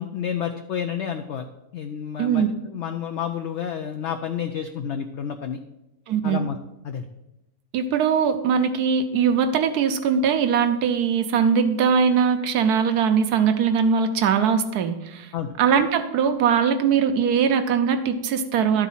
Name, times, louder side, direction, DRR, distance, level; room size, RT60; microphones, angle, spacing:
voice 1, 0.0-1.5 1.7-2.4 2.7-5.6 6.2-6.6 6.8-7.0 15.3-15.5, left 8 dB, 65° left, 6 dB, 0.7 m, -30 dB
voice 2, 6.1-6.4 7.7-15.3 15.6-18.9, right 7 dB, 80° right, 8 dB, 1.3 m, -21 dB
11.5 x 4.1 x 5.5 m, 0.91 s
omnidirectional pair, 1.6 m